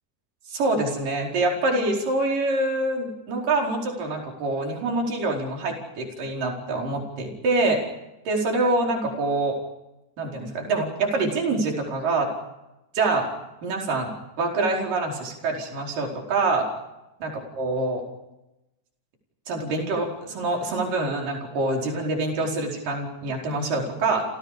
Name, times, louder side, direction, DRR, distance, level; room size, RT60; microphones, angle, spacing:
voice 1, 0.5-7.8 8.3-9.6 10.2-12.3 12.9-13.3 13.6-16.7 17.2-18.0 19.5-24.2, right 2 dB, 55° right, 0 dB, 6.3 m, -25 dB
29.5 x 29.0 x 5.2 m, 0.94 s
omnidirectional pair, 4.7 m